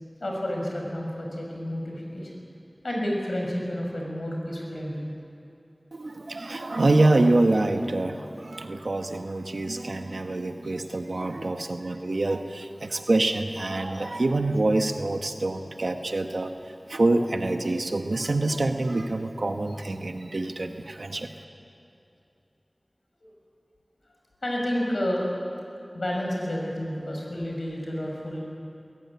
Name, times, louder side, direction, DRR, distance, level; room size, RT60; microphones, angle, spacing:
voice 1, 0.2-2.4 2.8-5.0 23.2-23.3 24.4-25.3 25.9-28.4, equal, 85° left, -1 dB, 5.5 m, -30 dB
voice 2, 5.9-16.5 16.9-21.3, right 2 dB, 90° right, 6 dB, 1.3 m, -26 dB
22.0 x 16.5 x 9.6 m, 2.7 s
wide cardioid pair, 40°, 0 cm